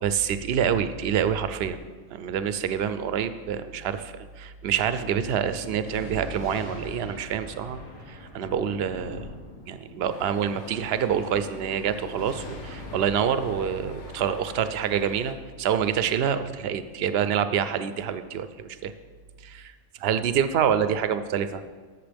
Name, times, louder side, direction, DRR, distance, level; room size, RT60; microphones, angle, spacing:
voice 1, 0.0-1.8 2.1-7.8 8.1-9.3 9.7-18.9 19.4-21.6, right 8 dB, 60° right, 11 dB, 0.7 m, -27 dB
Thunder, 4.9-15.8, left 1 dB, 80° left, 1.9 m, -42 dB
sound 1, 10.1-15.3, left 2 dB, 65° left, 1.2 m, -46 dB
13.5 x 6.7 x 3.4 m, 1.5 s
omnidirectional pair, 1.3 m